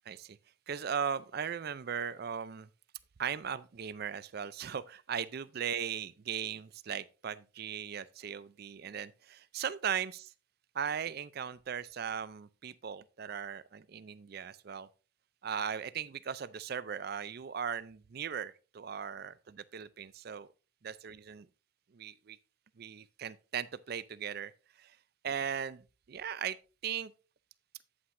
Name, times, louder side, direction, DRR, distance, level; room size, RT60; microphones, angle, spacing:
voice 1, 0.1-0.4 0.7-2.7 3.2-10.3 10.7-14.9 15.4-20.5 20.8-21.5 21.9-22.4 22.8-24.5 24.8-24.9 25.2-25.8 26.1-26.6 26.8-27.1, right 7 dB, 50° right, 0.4 m, -38 dB
9.4 x 8.6 x 2.6 m
head